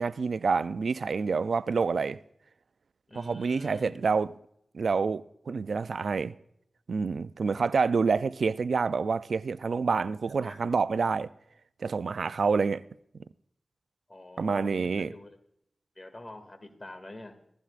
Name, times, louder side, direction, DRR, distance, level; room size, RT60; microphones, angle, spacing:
voice 1, 0.0-2.2 3.2-4.3 4.7-6.3 6.9-11.3 11.8-12.8 14.4-15.1, right 5 dB, 80° right, 0.3 m, -27 dB
voice 2, 3.1-4.0 7.5-7.7 8.1-8.2 10.4-10.6 14.1-15.4 16.0-17.4, left 1 dB, 35° left, 2.2 m, -46 dB
16.5 x 14.5 x 2.5 m
cardioid pair, 40°, 0 cm